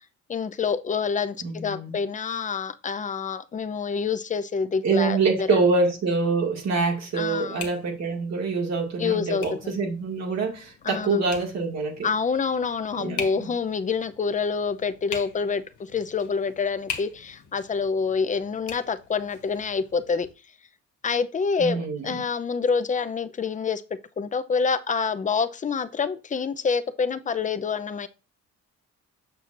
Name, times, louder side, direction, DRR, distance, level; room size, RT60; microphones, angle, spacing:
voice 1, 0.3-5.6 7.1-7.7 9.0-9.7 10.8-11.2 12.0-20.3 21.0-23.8 24.2-28.1, left 5 dB, 25° left, 0.6 m, -27 dB
voice 2, 1.4-1.9 4.8-12.1 13.0-13.5 21.6-22.2, right 4 dB, 60° right, 2.1 m, -25 dB
sound 1, 5.1-20.3, left 7 dB, 75° left, 1.4 m, -43 dB
6.8 x 6.3 x 2.5 m
cardioid pair, 90°, 30 cm